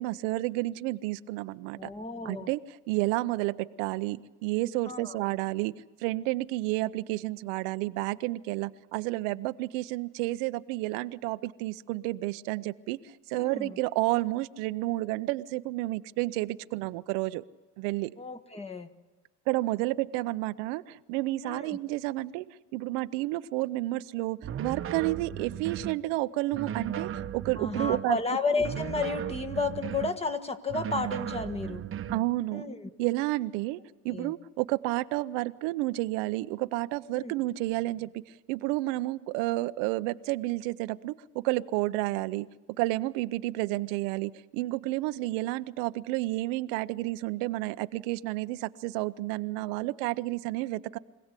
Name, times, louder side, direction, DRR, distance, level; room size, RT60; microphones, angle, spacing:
voice 1, 0.0-1.9 2.2-2.6 2.9-13.0 13.3-17.4 17.8-18.1 19.5-28.2 32.1-32.6 33.0-33.8 34.0-38.2 38.5-42.5 42.8-51.0, right 19 dB, 90° right, 13 dB, 0.8 m, -31 dB
voice 2, 1.8-2.5 4.9-5.1 13.3-13.8 18.2-18.9 21.4-21.8 27.6-31.8 32.5-32.9 34.1-34.3 37.1-37.3, left 4 dB, 15° left, 7 dB, 1.5 m, -32 dB
sound 1, 24.4-26.0 26.5-28.1 28.6-30.2 30.7-32.3, right 9 dB, 35° right, 1.0 m, -36 dB
25.0 x 17.0 x 8.3 m, 1.2 s
cardioid pair, 110°, 35 cm